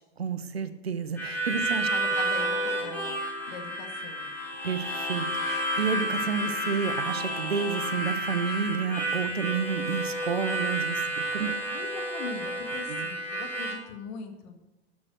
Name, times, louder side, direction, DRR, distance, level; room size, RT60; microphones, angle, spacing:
voice 1, 0.2-1.9 4.6-11.5 12.9-13.1, right 6 dB, 75° right, 11 dB, 1.2 m, -30 dB
Harmonica, 1.2-13.7, right 1 dB, 5° left, 3.5 m, -31 dB
voice 2, 1.9-4.3 11.4-14.6, left 5 dB, 40° left, 6 dB, 2.0 m, -41 dB
12.5 x 7.5 x 6.6 m, 1.1 s
figure-of-eight pair, 105°, 32 cm